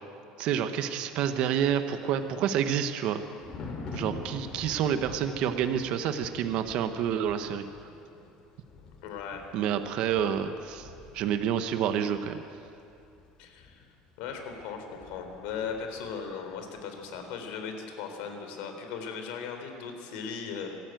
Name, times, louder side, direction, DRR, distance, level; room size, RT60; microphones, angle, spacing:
voice 1, 0.4-3.2 3.9-7.6 9.5-10.9 11.1-12.4, right 9 dB, 45° right, 8 dB, 1.0 m, -28 dB
Thunder, 1.7-16.2 16.5-16.8, left 3 dB, 30° left, 2.6 m, -46 dB
voice 2, 9.0-9.5 13.4-13.8 14.2-20.8, left 6 dB, 65° left, 5 dB, 3.5 m, -38 dB
25.0 x 14.0 x 9.1 m, 2.6 s
cardioid pair, 180°, 2 cm